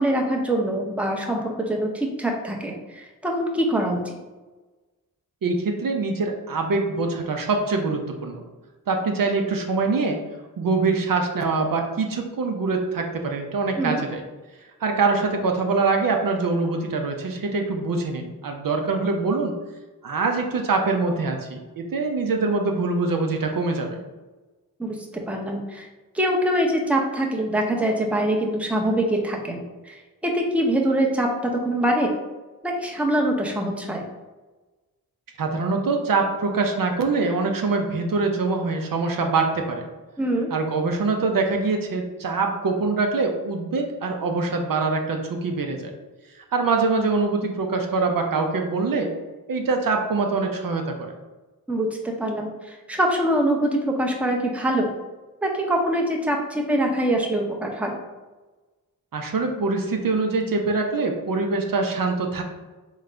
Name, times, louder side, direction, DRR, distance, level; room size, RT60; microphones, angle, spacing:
voice 1, 0.0-4.2 13.8-14.0 24.8-25.9 26.1-32.1 32.6-34.0 40.2-40.5 51.7-54.9 55.4-58.0, right 1 dB, 5° right, 0 dB, 0.8 m, -24 dB
voice 2, 5.4-8.4 8.9-10.2 10.6-14.2 14.8-19.5 20.0-24.0 35.4-39.8 40.5-45.9 46.5-49.1 49.5-51.1 59.1-62.4, right 3 dB, 60° right, 3 dB, 0.7 m, -24 dB
3.7 x 3.2 x 3.3 m, 1.2 s
cardioid pair, 50°, 38 cm